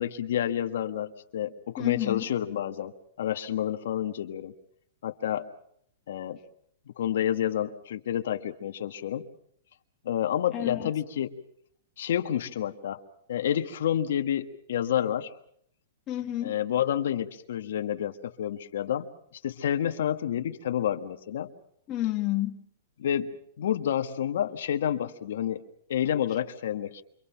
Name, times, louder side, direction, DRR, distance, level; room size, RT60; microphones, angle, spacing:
voice 1, 0.0-2.9 3.2-4.5 5.0-5.5 6.1-6.4 7.0-9.3 10.0-11.3 12.0-13.0 13.3-15.3 16.4-19.1 19.4-21.5 23.0-25.6 25.9-27.0, left 10 dB, 65° left, 1.6 m, -29 dB
voice 2, 1.8-2.3 10.5-10.9 16.1-16.6 21.9-22.6, left 15 dB, 20° left, 1.8 m, -30 dB
28.5 x 25.0 x 5.8 m
hypercardioid pair, 165°, 0 cm